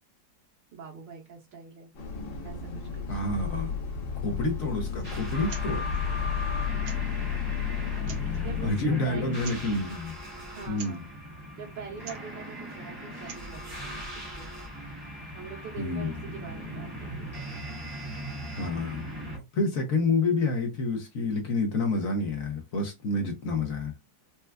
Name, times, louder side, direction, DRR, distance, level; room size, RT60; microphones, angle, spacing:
voice 1, 0.7-1.9 2.4-3.2 6.4-6.8 8.4-9.6 10.5-11.1 11.6-14.5 15.3-17.5, right 6 dB, 85° right, 1.8 m, -44 dB
Bus, 1.9-8.7, left 7 dB, 80° left, 1.6 m, -32 dB
voice 2, 3.1-3.7 4.2-5.8 8.2-10.2 10.7-11.0 15.8-16.1 18.5-19.1 19.3-23.9, left 3 dB, 60° left, 1.0 m, -29 dB
sound 1, 5.0-19.4, equal, 20° right, 0.8 m, -38 dB
sound 2, 5.5-5.7 5.9-6.0 6.8-7.2 7.9-8.4 9.4-9.7 10.7-11.0 12.0-12.3 13.1-13.5, right 6 dB, 65° right, 0.7 m, -45 dB
4.3 x 2.3 x 2.2 m
omnidirectional pair, 1.9 m